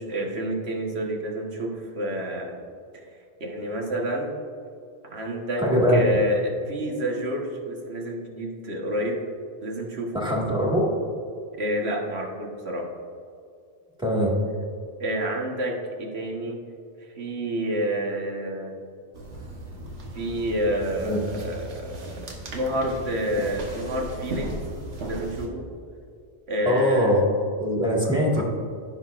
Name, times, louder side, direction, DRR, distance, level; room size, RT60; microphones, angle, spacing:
voice 1, 0.0-2.6 2.9-3.0 3.4-4.3 5.0-9.2 9.6-10.2 11.5-12.9 15.0-16.6 17.2-18.7 20.1-24.5 25.1-25.6 26.5-27.2 28.4-28.5, equal, 70° right, 0 dB, 1.6 m, -29 dB
voice 2, 5.6-6.0 10.1-10.9 14.0-14.3 21.0-21.2 26.6-27.2 27.6-28.4, equal, 5° right, -4 dB, 1.6 m, -22 dB
sound 1, 19.1-25.5, right 1 dB, 85° right, 1.5 m, -36 dB
15.5 x 6.0 x 2.5 m, 2.4 s
omnidirectional pair, 1.1 m